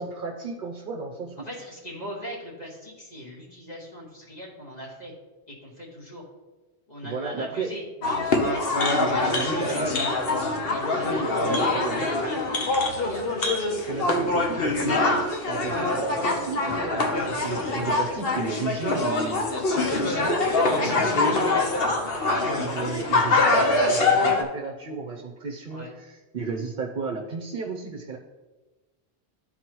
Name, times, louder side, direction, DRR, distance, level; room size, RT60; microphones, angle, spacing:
voice 1, 0.0-1.5 7.0-7.7 8.7-10.0 11.0-12.1 13.9-19.5 19.8-20.6 20.9-21.6 22.6-28.2, right 4 dB, 55° right, 0 dB, 0.8 m, -33 dB
voice 2, 1.4-5.1 5.5-6.2 6.9-10.0 10.6-13.5 17.2-17.5 20.5-22.1 23.4-24.2 25.7-25.9, equal, 40° left, -4 dB, 1.6 m, -40 dB
sound 1, 8.0-24.4, left 3 dB, 60° left, 1.1 m, -24 dB
12.0 x 4.1 x 3.0 m, 1.2 s
omnidirectional pair, 1.1 m